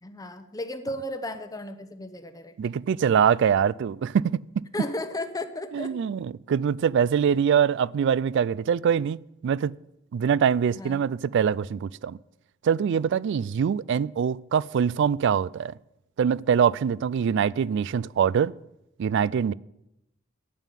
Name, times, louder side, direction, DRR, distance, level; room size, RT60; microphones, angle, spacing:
voice 1, 0.0-2.5 4.7-6.0 10.7-11.0, left 1 dB, 20° left, 9 dB, 0.8 m, -34 dB
voice 2, 2.6-4.6 5.7-9.7 10.1-12.2 12.6-15.7 16.2-18.5 19.0-19.5, right 7 dB, 60° right, 22 dB, 0.3 m, -24 dB
9.2 x 8.9 x 7.4 m, 0.88 s
head